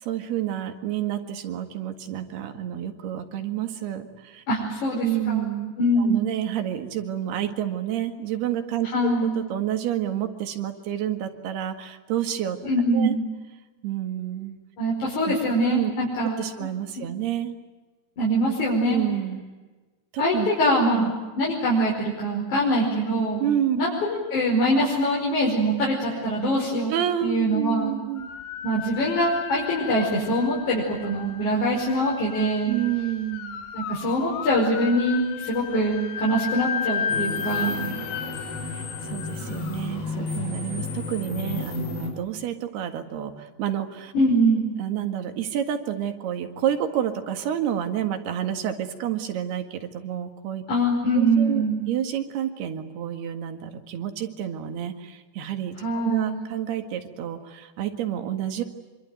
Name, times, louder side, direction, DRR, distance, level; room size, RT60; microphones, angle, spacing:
voice 1, 0.0-4.4 5.0-12.6 12.9-13.2 13.8-14.6 15.2-15.3 15.6-15.9 16.4-17.6 18.8-19.4 20.1-20.5 20.7-21.1 23.4-23.8 26.9-28.3 32.7-33.6 37.7-38.1 38.7-44.1 44.8-50.6 51.4-58.6, right 11 dB, 70° right, 7 dB, 3.8 m, -29 dB
voice 2, 4.5-5.4 5.8-6.2 8.9-9.4 12.6-13.2 14.8-16.4 17.0-17.1 18.2-19.0 20.2-23.5 23.8-26.9 27.2-27.9 28.6-32.7 33.7-37.9 44.1-44.6 50.7-51.8 55.8-56.4, right 1 dB, 45° left, -4 dB, 6.5 m, -23 dB
sound 1, 28.2-41.2, left 7 dB, 65° left, 2.9 m, -34 dB
sound 2, 37.1-42.1, left 3 dB, 90° left, 7.4 m, -32 dB
26.0 x 24.5 x 9.2 m, 1.2 s
omnidirectional pair, 4.9 m